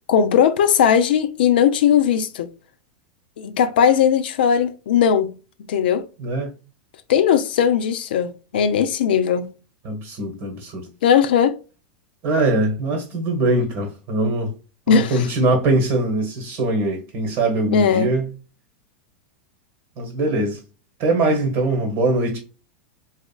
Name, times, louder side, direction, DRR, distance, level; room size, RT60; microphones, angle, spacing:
voice 1, 0.1-2.5 3.4-5.3 5.7-6.0 7.1-9.5 11.0-11.6 14.9-15.3 17.7-18.1, left 8 dB, 75° left, 0.4 m, -18 dB
voice 2, 6.2-6.5 9.8-10.9 12.2-14.5 14.9-18.3 20.0-20.6 21.0-22.4, right 2 dB, 55° right, 1.0 m, -22 dB
4.1 x 2.4 x 2.2 m
hypercardioid pair, 105°, 5 cm